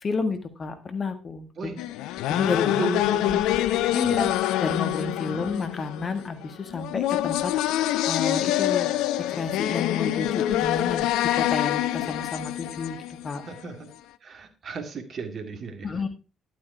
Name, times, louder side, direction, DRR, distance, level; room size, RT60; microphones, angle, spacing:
voice 1, 0.0-1.5 2.3-2.9 3.9-4.3 4.6-7.5 8.1-8.9 9.3-13.0 13.2-13.4 15.8-16.1, left 4 dB, 40° left, 9 dB, 1.7 m, -30 dB
sound 1, 1.8-13.6, left 13 dB, 70° left, 0.5 m, -26 dB
voice 2, 2.6-3.6 4.0-4.3 5.3-5.5 13.4-13.9 14.2-16.1, right 3 dB, 50° right, 7 dB, 2.1 m, -35 dB
11.5 x 7.5 x 4.4 m, 0.32 s
hypercardioid pair, 50°, 0 cm